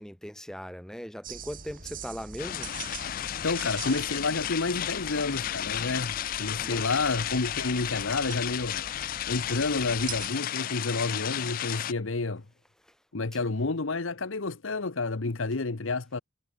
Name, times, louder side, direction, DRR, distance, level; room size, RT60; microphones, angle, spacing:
voice 1, 0.0-2.7 6.6-6.9 12.9-13.0 13.3-13.4, equal, 5° left, 2.9 m, -39 dB
sound 1, 1.2-10.3, right 5 dB, 40° right, 5.8 m, -44 dB
sound 2, 2.4-11.9, left 11 dB, 45° left, 0.3 m, -33 dB
voice 2, 3.4-8.8 9.3-12.4 13.1-16.2, left 3 dB, 75° left, 1.1 m, -30 dB
head